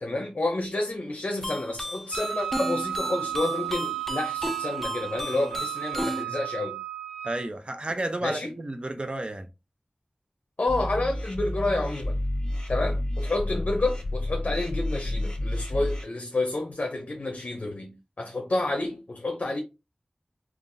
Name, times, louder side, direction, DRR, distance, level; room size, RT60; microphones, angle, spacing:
voice 1, 0.0-6.8 8.2-8.5 10.6-12.2 12.7-19.6, left 2 dB, 65° left, 0.6 m, -29 dB
sound 1, 1.4-6.2, left 1 dB, 10° left, 0.4 m, -34 dB
Wind instrument woodwind instrument, 2.1-7.5, right 12 dB, 70° right, 0.9 m, -34 dB
voice 2, 7.2-9.5, right 1 dB, 40° right, 0.6 m, -32 dB
sound 2, 10.7-16.0, left 1 dB, 35° left, 1.4 m, -30 dB
3.8 x 2.4 x 2.6 m
wide cardioid pair, 65°, 3 cm